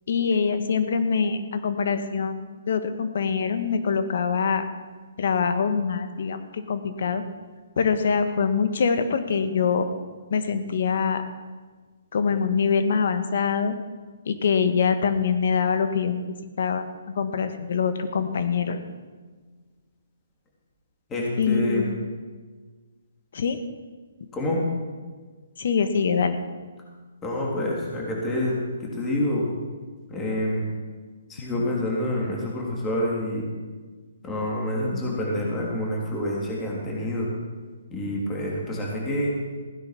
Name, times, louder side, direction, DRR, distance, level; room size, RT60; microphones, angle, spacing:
voice 1, 0.1-4.6 5.2-7.2 7.8-9.9 10.3-11.2 12.1-13.8 14.2-16.2 16.6-16.8 17.1-18.9 21.4-21.9 23.3-23.6 25.6-26.4, left 6 dB, 60° left, 9 dB, 1.5 m, -24 dB
voice 2, 21.1-21.8 24.3-24.6 27.2-29.5 30.1-30.7 31.3-33.5 34.2-37.3 37.9-39.3, left 1 dB, 15° left, -3 dB, 3.2 m, -27 dB
16.0 x 9.9 x 6.0 m, 1.4 s
hypercardioid pair, 145°, 0 cm